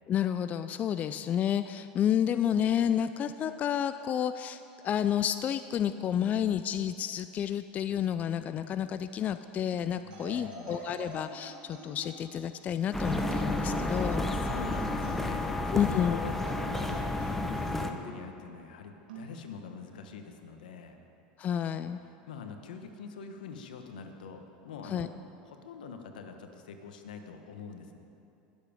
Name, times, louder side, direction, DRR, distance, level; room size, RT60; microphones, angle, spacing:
voice 1, 0.1-14.2 15.7-16.2 21.4-22.0 24.9-25.1, left 9 dB, 35° left, 11 dB, 0.4 m, -30 dB
voice 2, 9.9-10.7 14.3-17.2 17.8-21.0 21.8-21.9 22.3-25.1 25.5-28.0, left 5 dB, 85° left, 6 dB, 1.2 m, -44 dB
sound 1, 10.1-12.4 13.0-15.4 15.8-18.0 19.1-19.3, right 2 dB, 85° right, 2.6 m, -45 dB
sound 2, 12.9-17.9, left 2 dB, 5° left, 0.9 m, -31 dB
20.0 x 7.5 x 5.2 m, 2.8 s
hypercardioid pair, 105°, 4 cm